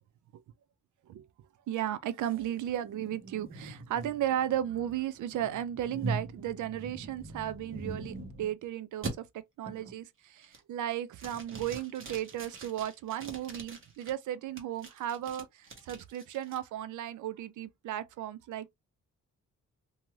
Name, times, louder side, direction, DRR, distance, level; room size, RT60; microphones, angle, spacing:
voice 1, 1.7-18.7, right 11 dB, 80° right, 0.5 m, -35 dB
sound 1, 2.2-8.5 9.0-9.1 9.6-10.0 10.4-10.8 11.2-14.1 14.6-16.6, right 3 dB, 45° right, 1.0 m, -42 dB
2.6 x 2.3 x 3.0 m
cardioid pair, 95°, 30 cm